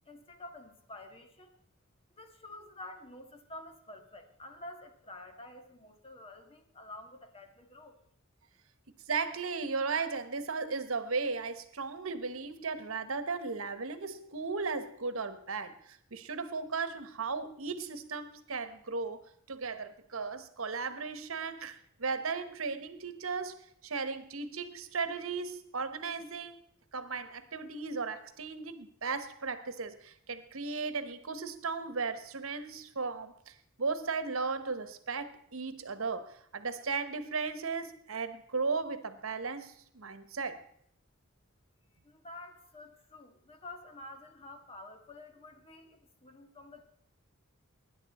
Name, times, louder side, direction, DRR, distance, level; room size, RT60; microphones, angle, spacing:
voice 1, 0.1-1.5 2.2-8.0 42.0-46.8, left 2 dB, 30° left, 1.7 m, -49 dB
voice 2, 9.1-26.6 26.9-40.6, right 4 dB, 80° right, 1.1 m, -36 dB
20.0 x 10.0 x 4.2 m
head